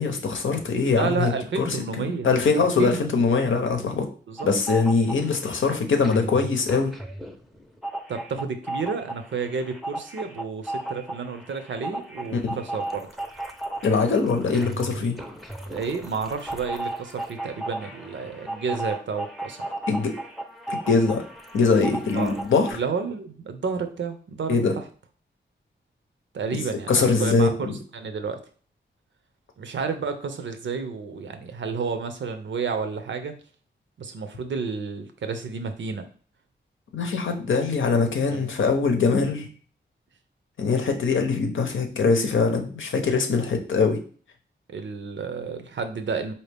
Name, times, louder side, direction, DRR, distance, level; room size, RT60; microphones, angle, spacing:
voice 1, 0.0-4.1 4.4-6.9 12.3-12.5 13.8-15.2 19.9-20.1 20.7-21.2 21.5-22.8 24.5-24.7 26.9-27.8 36.9-39.5 40.6-44.0, left 4 dB, 80° left, 4 dB, 0.7 m, -22 dB
voice 2, 0.9-3.5 4.3-4.5 8.1-13.1 15.7-19.7 22.1-22.4 22.7-24.8 26.3-28.4 29.6-33.4 34.0-36.1 38.3-38.5 44.7-46.3, right 5 dB, 75° right, 8 dB, 0.6 m, -31 dB
sound 1, 4.4-5.6 5.9-22.7, right 1 dB, ahead, 0.5 m, -35 dB
4.3 x 2.7 x 3.4 m, 0.43 s
wide cardioid pair, 85°, 20 cm